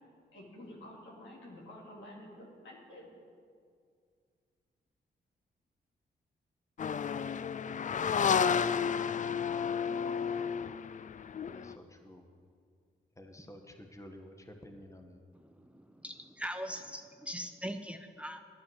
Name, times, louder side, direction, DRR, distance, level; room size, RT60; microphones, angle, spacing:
voice 1, 0.3-3.1, left 1 dB, 75° left, -2 dB, 2.7 m, -50 dB
sound 1, 6.8-11.7, left 7 dB, 40° left, 0.4 m, -31 dB
voice 2, 11.4-12.2 13.1-15.2, left 1 dB, 15° left, 4 dB, 1.6 m, -51 dB
voice 3, 15.6-18.4, equal, 5° right, 7 dB, 0.8 m, -41 dB
10.5 x 9.7 x 6.3 m, 2.2 s
supercardioid pair, 45°, 20 cm